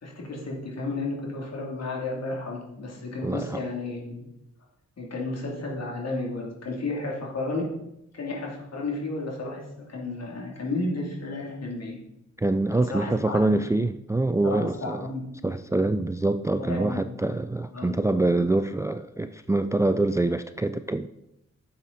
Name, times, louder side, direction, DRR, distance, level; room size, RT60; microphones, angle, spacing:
voice 1, 0.0-4.3 5.0-7.6 8.1-12.0 12.8-13.6 14.4-15.2 16.5-17.1 17.7-18.0, left 2 dB, 60° left, -2 dB, 2.9 m, -32 dB
voice 2, 3.2-3.6 12.4-15.1 15.4-21.1, right 2 dB, 10° right, 10 dB, 0.3 m, -25 dB
10.5 x 7.1 x 4.1 m, 0.83 s
cardioid pair, 80°, 29 cm